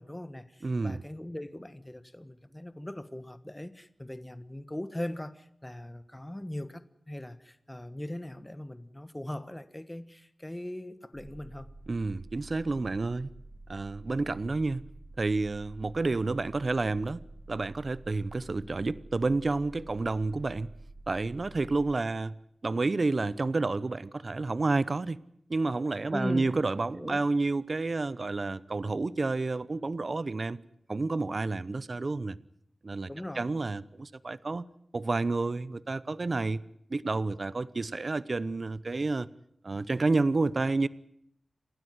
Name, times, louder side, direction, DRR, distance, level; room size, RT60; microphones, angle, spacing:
voice 1, 0.0-11.7 26.1-27.2 33.1-33.5, left 1 dB, 15° left, 1.4 m, -40 dB
voice 2, 0.6-1.0 11.9-13.3 13.7-14.8 15.2-17.2 17.5-20.7 21.1-22.3 22.6-25.2 25.5-30.6 30.9-32.4 32.8-33.1 33.4-34.7 34.9-36.6 36.9-39.3 39.6-40.9, right 3 dB, 50° right, 0.8 m, -30 dB
sound 1, 11.1-21.9, right 2 dB, 65° right, 5.4 m, -49 dB
29.0 x 12.5 x 9.5 m
wide cardioid pair, 65°, 0 cm